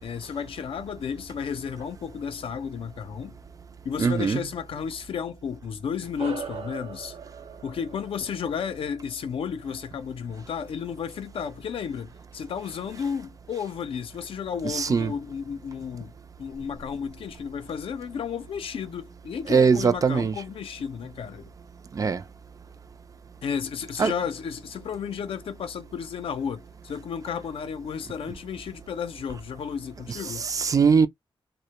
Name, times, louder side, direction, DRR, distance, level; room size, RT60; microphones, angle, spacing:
voice 1, 0.0-3.4 3.8-7.2 7.6-16.1 16.4-21.5 23.4-30.5, left 7 dB, 80° left, 0.4 m, -33 dB
voice 2, 4.0-4.4 14.7-15.1 19.5-20.3 21.9-22.2 24.0-24.1 30.5-31.1, right 5 dB, 40° right, 0.3 m, -21 dB
sound 1, 6.2-10.9, right 6 dB, 85° right, 0.9 m, -42 dB
2.1 x 2.1 x 2.8 m
wide cardioid pair, 100°, 9 cm